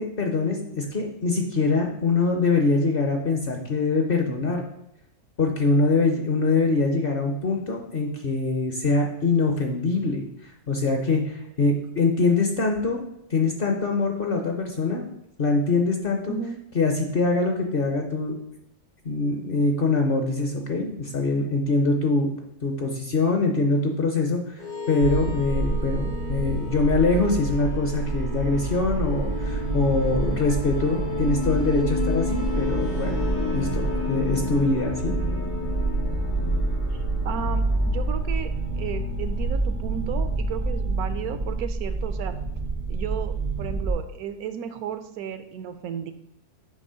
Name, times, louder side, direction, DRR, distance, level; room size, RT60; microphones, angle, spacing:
voice 1, 0.0-4.6 5.4-13.0 13.3-15.1 15.4-16.4 16.7-18.4 19.0-22.3 22.6-33.2 33.5-35.2, left 3 dB, 50° left, 2 dB, 0.7 m, -24 dB
sound 1, 24.6-41.2, left 2 dB, 80° left, 2.2 m, -30 dB
sound 2, 25.0-43.9, right 3 dB, 60° right, 0.3 m, -28 dB
voice 2, 36.9-42.3 42.9-46.1, right 8 dB, 75° right, 10 dB, 1.0 m, -34 dB
7.3 x 3.0 x 5.5 m, 0.83 s
omnidirectional pair, 1.6 m